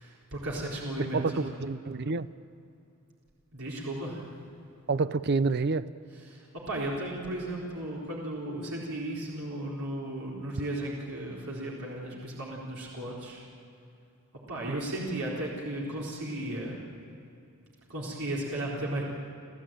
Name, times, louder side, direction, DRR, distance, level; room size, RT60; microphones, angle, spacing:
voice 1, 0.0-1.4 3.5-4.4 6.3-13.4 14.5-16.9 17.9-19.0, right 1 dB, 85° right, -4 dB, 4.2 m, -35 dB
voice 2, 1.0-2.3 4.9-5.9 14.7-14.8, right 4 dB, 50° right, 14 dB, 0.6 m, -28 dB
29.5 x 14.5 x 9.0 m, 2.6 s
head